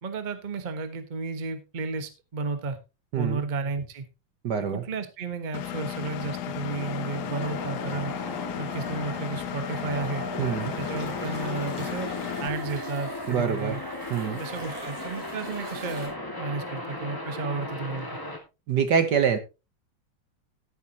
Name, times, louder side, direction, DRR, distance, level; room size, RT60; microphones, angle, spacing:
voice 1, 0.0-2.8 3.2-4.1 4.6-8.1 8.6-10.2 10.6-12.1 12.4-13.8 14.4-18.1, right 3 dB, 30° right, 1.0 m, -33 dB
voice 2, 4.4-4.8 10.4-10.7 13.3-13.8 14.1-14.4 18.7-19.4, right 7 dB, 55° right, 1.4 m, -25 dB
Engine, 5.5-12.5, left 12 dB, 70° left, 1.0 m, -35 dB
sound 1, 5.6-18.4, left 1 dB, 10° left, 2.0 m, -36 dB
sound 2, 7.9-8.5 8.9-16.1, right 3 dB, 90° right, 4.5 m, -49 dB
12.0 x 10.5 x 2.9 m
omnidirectional pair, 2.4 m